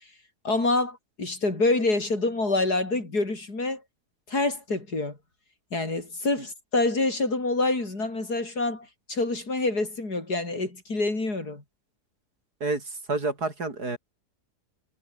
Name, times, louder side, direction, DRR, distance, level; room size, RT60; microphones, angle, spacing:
voice 1, 0.4-3.8 4.3-5.2 5.7-11.6, left 2 dB, 70° left, 5.9 m, -26 dB
voice 2, 12.6-14.0, right 3 dB, 70° right, 5.4 m, -29 dB
omnidirectional pair, 1.7 m